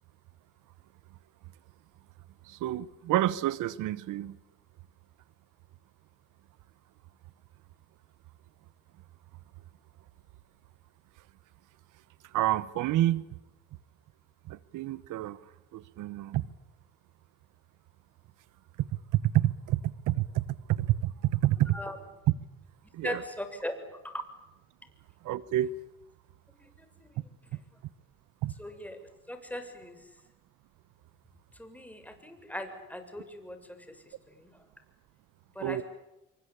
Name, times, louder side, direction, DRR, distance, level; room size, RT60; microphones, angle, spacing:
voice 1, 2.4-4.4 12.3-13.2 14.5-15.4 15.7-16.4 18.8-18.9 19.1-21.8 22.9-23.2 25.2-25.7 28.4-28.5 35.6-35.8, right 14 dB, 90° right, 19 dB, 1.1 m, -28 dB
voice 2, 23.0-23.7 24.0-24.2 26.6-27.3 28.6-29.0 29.3-30.2 31.5-34.7 35.5-35.8, left 1 dB, 5° left, 7 dB, 6.7 m, -40 dB
27.5 x 24.5 x 8.7 m, 0.94 s
cardioid pair, 90°, 30 cm